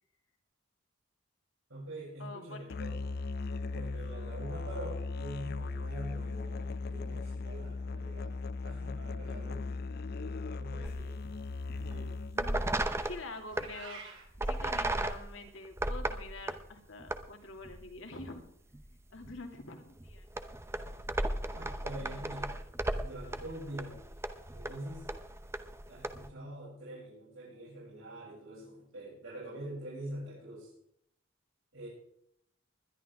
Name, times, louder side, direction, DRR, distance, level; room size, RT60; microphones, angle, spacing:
voice 1, 1.7-3.0 3.7-9.8 10.2-11.2 11.9-12.1 21.5-22.6 22.8-24.0 24.5-25.1 25.9-30.7 31.7-31.9, right 1 dB, 80° right, -8 dB, 7.1 m, -45 dB
voice 2, 2.2-2.8 10.5-11.1 12.3-12.7 13.0-14.0 14.4-18.4 19.1-20.3, left 2 dB, 70° left, 4 dB, 2.5 m, -47 dB
Musical instrument, 2.7-12.5, left 3 dB, 50° left, 0.4 m, -38 dB
sound 1, 10.8-11.3 11.7-12.0 12.3-13.7 14.3-16.6 17.0-17.2 17.6-18.4 18.7-18.9 19.2-19.4 20.0-26.3, right 1 dB, 15° right, 0.8 m, -36 dB
Meow, 13.5-14.2, right 4 dB, 65° right, 3.4 m, -47 dB
20.5 x 11.5 x 3.6 m, 0.70 s
head